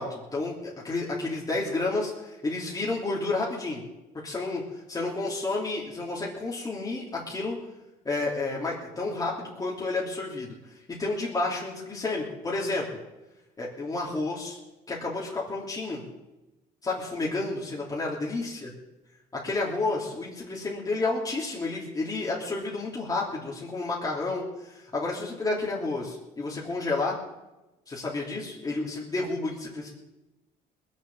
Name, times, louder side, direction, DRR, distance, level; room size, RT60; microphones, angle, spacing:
voice 1, 0.0-3.8 4.2-4.6 4.9-7.6 8.0-10.5 11.0-12.8 13.6-14.6 14.9-16.0 16.8-18.5 19.3-27.1 27.9-29.9, left 3 dB, 20° left, -4 dB, 3.1 m, -30 dB
20.5 x 7.4 x 7.3 m, 1.0 s
cardioid pair, 110°, 17 cm